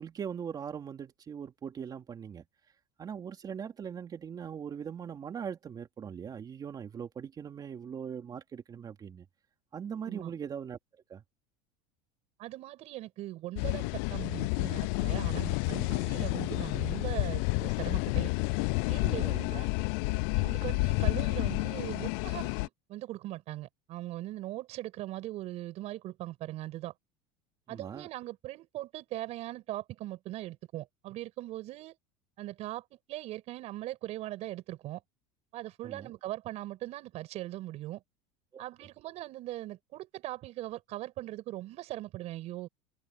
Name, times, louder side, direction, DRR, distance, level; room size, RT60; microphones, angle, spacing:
voice 1, 0.0-2.4 3.0-9.2 9.7-10.8 11.1-11.2 19.0-19.6 27.7-28.1 35.8-36.1 38.5-38.6, right 7 dB, 30° right, 2.9 m, -40 dB
voice 2, 12.4-18.3 18.9-19.2 19.5-19.7 20.4-26.9 27.7-32.0 32.4-35.0 35.5-38.0 38.6-42.7, right 15 dB, 50° right, 5.9 m, -40 dB
sound 1, 13.6-22.7, left 28 dB, 70° left, 0.4 m, -30 dB
supercardioid pair, 125°, 14 cm